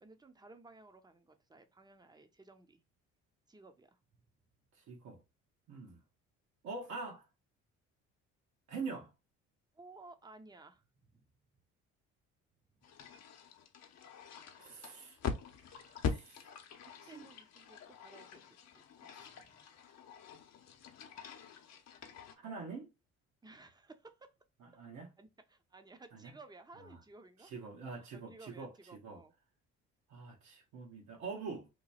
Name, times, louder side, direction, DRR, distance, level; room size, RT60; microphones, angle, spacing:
voice 1, 0.0-2.8 3.5-4.0 9.7-11.3 16.8-19.6 23.4-24.3 25.2-27.5 28.1-29.3, right 3 dB, 15° right, 0.6 m, -57 dB
voice 2, 4.7-5.2 5.7-6.0 6.6-7.3 8.7-9.1 14.6-15.2 15.7-16.5 17.1-17.2 19.2-19.3 22.3-22.9 24.6-25.1 26.1-26.3 26.8-27.0 27.4-28.7 29.0-29.2 30.1-31.7, right 4 dB, 70° right, 1.1 m, -45 dB
sound 1, 12.8-22.3, left 6 dB, 55° left, 0.8 m, -44 dB
3.0 x 2.2 x 4.1 m
supercardioid pair, 85°, 31 cm